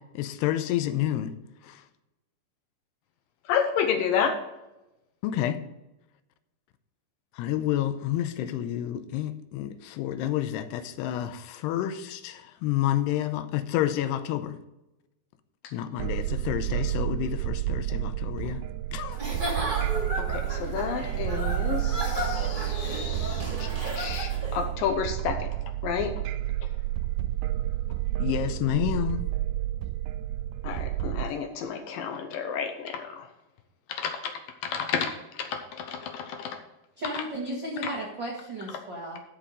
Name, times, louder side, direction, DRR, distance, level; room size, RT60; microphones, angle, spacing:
voice 1, 0.1-1.4 1.6-1.8 5.2-5.6 7.4-14.6 15.7-18.6 18.9-19.2 28.2-29.3, left 12 dB, 90° left, 11 dB, 2.8 m, -29 dB
voice 2, 3.5-4.3 20.2-23.7 24.0-25.5 25.8-26.1 30.6-33.3 33.9-34.3 34.6-35.1 35.4-36.6, left 7 dB, 70° left, 5 dB, 2.3 m, -30 dB
sound 1, 16.0-31.2, right 14 dB, 80° right, 2.3 m, -30 dB
Giggle / Chuckle chortle, 19.1-24.6, equal, 15° right, 1.7 m, -34 dB
voice 3, 37.0-39.2, right 1 dB, 60° right, -3 dB, 1.1 m, -34 dB
12.5 x 5.9 x 4.9 m, 0.96 s
omnidirectional pair, 4.7 m